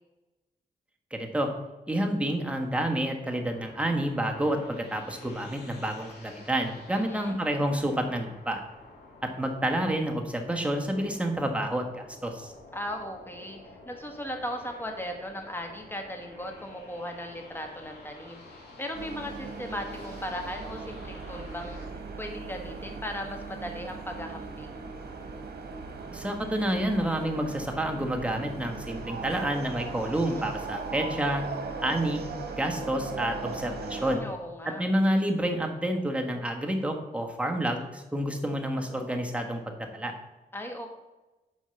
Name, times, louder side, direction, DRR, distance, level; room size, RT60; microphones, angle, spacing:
voice 1, 1.1-1.5 1.9-8.6 9.2-12.5 26.1-31.4 31.8-32.2 32.5-34.2 34.8-39.6 39.9-40.1, right 1 dB, 5° right, 2 dB, 1.2 m, -29 dB
sound 1, 3.5-21.9, left 2 dB, 80° left, 2.2 m, -51 dB
voice 2, 6.9-7.4 12.7-21.8 22.2-24.8 30.0-30.5 33.9-34.8 40.5-40.9, equal, 15° left, 3 dB, 1.5 m, -38 dB
sound 2, 18.9-34.2, right 4 dB, 70° right, 1.4 m, -38 dB
7.3 x 4.6 x 6.8 m, 1.1 s
cardioid pair, 95°, 17 cm